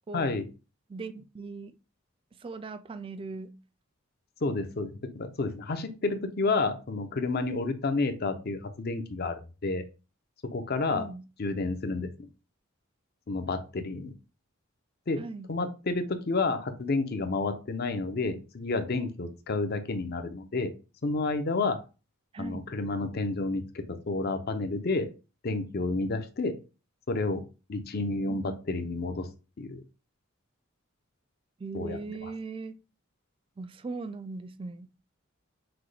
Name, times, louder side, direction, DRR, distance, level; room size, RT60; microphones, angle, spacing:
voice 1, 0.1-0.4 4.4-9.8 10.4-11.0 11.4-12.3 13.3-14.1 15.1-15.2 15.5-20.7 21.0-21.8 22.4-25.1 25.4-26.6 27.1-27.4 27.7-29.3 29.6-29.8 31.7-32.3, left 3 dB, 50° left, 0.6 m, -30 dB
voice 2, 0.9-1.8 2.4-3.5 10.9-11.3 15.2-15.7 22.3-22.7 28.3-28.6 31.6-32.8 33.6-34.9, right 3 dB, 25° right, 0.3 m, -39 dB
5.9 x 2.2 x 3.2 m
head